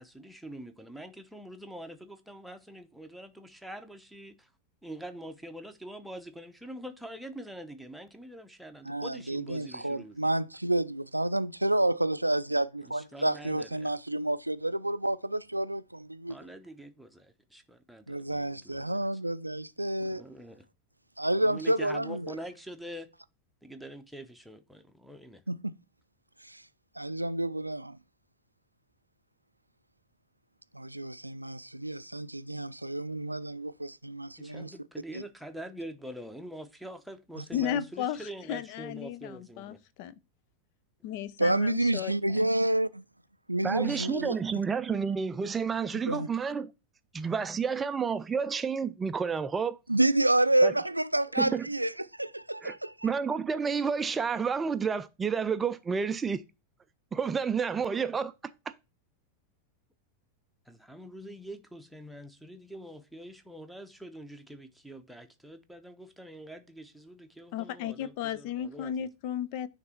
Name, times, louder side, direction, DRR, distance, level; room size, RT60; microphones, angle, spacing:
voice 1, 0.0-4.5 4.8-10.4 12.8-14.0 16.3-19.1 20.0-20.6 21.4-23.1 23.6-25.4 34.4-39.8 60.7-69.1, right 1 dB, ahead, 0.9 m, -45 dB
voice 2, 8.9-16.4 18.1-20.2 21.2-22.3 25.5-25.7 26.4-26.6 27.0-28.0 30.7-34.7 35.1-35.2 37.4-37.5 41.4-43.0 43.5-44.4 46.1-46.3 49.9-51.9 52.2-53.1, right 1 dB, 85° right, 0.3 m, -29 dB
voice 3, 37.5-40.2 41.0-42.5 67.5-69.7, left 10 dB, 45° left, 0.5 m, -35 dB
voice 4, 43.6-46.7 47.1-49.8 50.6-50.7 51.4-51.7 52.6-52.8 53.0-56.4 57.1-58.3, right 6 dB, 15° right, 0.4 m, -30 dB
9.5 x 3.3 x 4.3 m
figure-of-eight pair, 90°, 0 cm